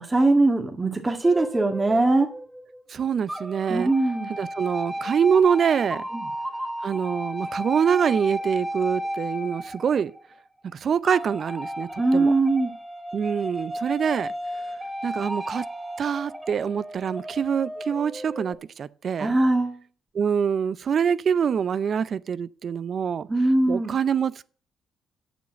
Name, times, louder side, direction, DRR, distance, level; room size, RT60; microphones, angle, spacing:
voice 1, 0.0-2.3 3.7-4.3 6.1-6.3 12.0-12.7 19.2-19.8 23.3-23.9, right 2 dB, 25° right, 1.9 m, -21 dB
sound 1, 1.2-2.8 3.3-10.4 11.1-18.5, equal, 5° right, 2.7 m, -34 dB
voice 2, 2.9-3.9 4.3-6.1 6.8-10.1 10.6-12.3 13.1-14.3 15.0-15.6 16.0-19.4 20.1-23.3 23.7-24.5, right 7 dB, 55° right, 0.5 m, -25 dB
8.2 x 7.1 x 7.6 m
hypercardioid pair, 50°, 0 cm